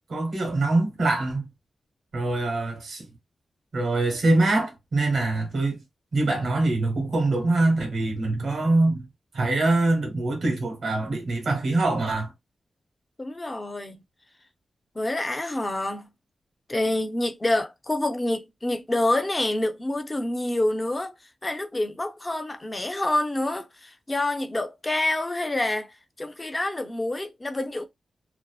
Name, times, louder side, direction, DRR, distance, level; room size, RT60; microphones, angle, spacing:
voice 1, 0.1-1.5 2.1-3.1 3.7-5.8 6.1-9.1 9.3-12.3, right 2 dB, 70° right, 1.0 m, -24 dB
voice 2, 13.2-14.0 15.0-16.1 16.7-21.1 21.4-27.9, left 1 dB, 20° left, 0.4 m, -27 dB
2.6 x 2.1 x 2.3 m
wide cardioid pair, 115°, 0 cm